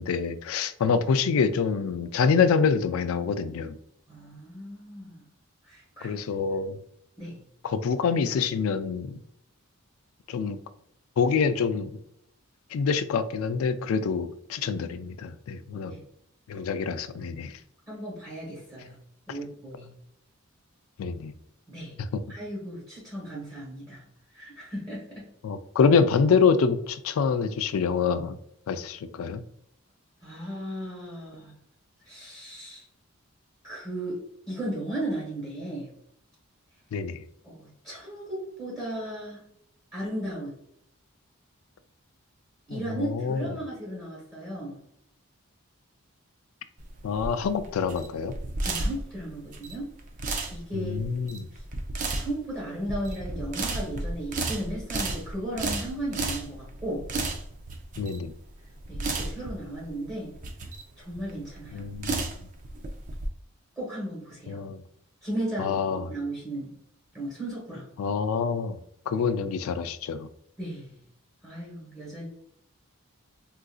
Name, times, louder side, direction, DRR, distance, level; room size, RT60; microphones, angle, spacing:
voice 1, 0.0-3.7 6.0-6.8 7.7-9.2 10.3-10.6 11.2-11.9 12.7-15.9 16.5-17.5 21.0-21.3 25.4-28.3 28.7-29.4 36.9-37.2 42.7-43.5 47.0-48.3 50.7-51.5 58.0-58.3 61.7-62.3 64.5-64.8 65.6-66.1 68.0-68.8 69.1-70.3, left 5 dB, 70° left, 11 dB, 0.3 m, -26 dB
voice 2, 4.1-5.2 5.6-6.1 7.2-7.4 14.6-14.7 15.8-16.0 17.9-19.0 19.3-19.9 21.7-22.0 22.3-24.0 24.3-25.3 30.2-31.5 32.0-32.8 33.6-35.9 37.4-39.4 39.9-40.5 42.7-44.8 48.6-49.9 50.5-51.6 52.1-57.1 58.9-60.3 61.0-61.8 63.8-64.6 65.2-65.8 66.1-66.8 67.1-67.9 69.1-69.2 70.6-71.0 71.4-72.3, right 1 dB, 15° right, -7 dB, 1.1 m, -36 dB
sound 1, 46.8-63.3, right 2 dB, 35° right, 0.4 m, -33 dB
3.8 x 2.5 x 2.3 m, 0.72 s
head